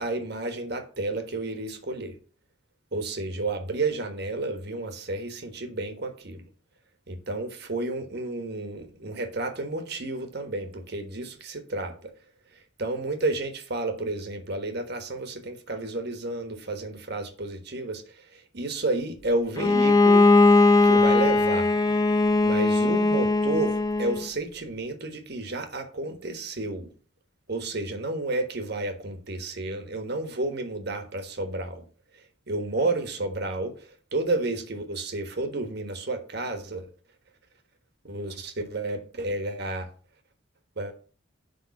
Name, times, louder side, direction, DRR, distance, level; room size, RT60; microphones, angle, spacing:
voice 1, 0.0-2.2 2.9-6.5 7.1-12.1 12.5-20.3 20.8-21.7 22.4-26.9 27.5-31.8 32.1-36.9 38.0-39.9 40.8-40.9, right 2 dB, 50° right, 1.4 m, -31 dB
Bowed string instrument, 19.6-24.3, left 3 dB, 15° left, 0.6 m, -19 dB
10.5 x 3.6 x 7.0 m
head